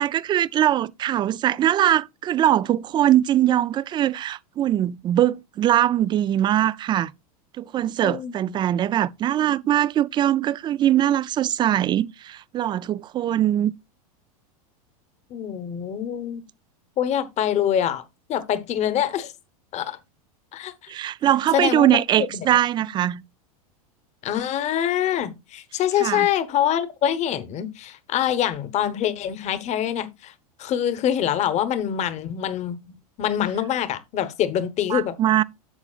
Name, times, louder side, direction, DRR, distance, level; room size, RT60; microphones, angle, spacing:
voice 1, 0.0-7.1 7.6-13.7 20.9-23.2 26.0-26.3 34.9-35.4, right 12 dB, 25° right, 0.3 m, -21 dB
voice 2, 8.0-8.5 15.3-16.4 17.0-18.0 18.3-19.3 19.7-20.0 20.5-20.9 21.5-22.5 24.2-30.3 30.6-35.2, left 10 dB, 40° left, 1.1 m, -25 dB
11.0 x 7.1 x 2.4 m
hypercardioid pair, 115°, 19 cm